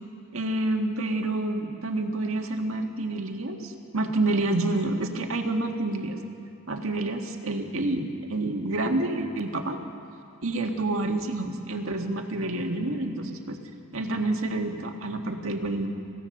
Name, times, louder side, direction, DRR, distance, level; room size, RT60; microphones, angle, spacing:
voice 1, 0.3-6.2 6.7-9.8 10.4-13.6 13.9-15.9, right 2 dB, 75° right, 4 dB, 1.8 m, -28 dB
25.5 x 16.0 x 6.6 m, 2.6 s
head